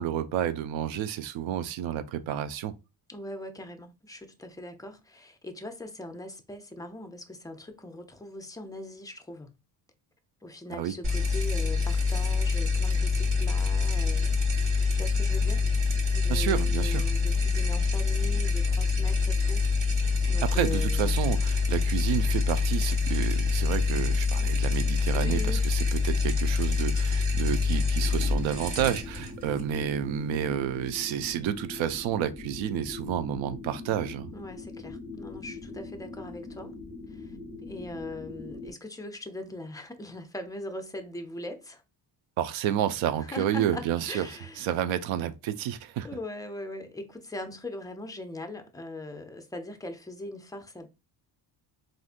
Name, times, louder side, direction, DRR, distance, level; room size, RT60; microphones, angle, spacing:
voice 1, 0.0-2.7 10.7-10.9 16.3-17.1 20.4-34.3 42.4-44.2 44.6-46.1, right 10 dB, 80° right, 0.6 m, -30 dB
voice 2, 3.1-9.5 10.4-14.3 14.9-15.7 16.1-19.7 20.3-21.2 25.1-25.6 34.3-36.7 37.1-41.8 43.2-44.6 46.0-50.9, left 1 dB, 10° left, 0.5 m, -40 dB
sound 1, 11.0-30.3, left 4 dB, 40° right, 1.5 m, -26 dB
sound 2, 28.0-38.7, left 3 dB, 25° left, 1.0 m, -42 dB
3.6 x 2.6 x 2.5 m
cardioid pair, 100°, 46 cm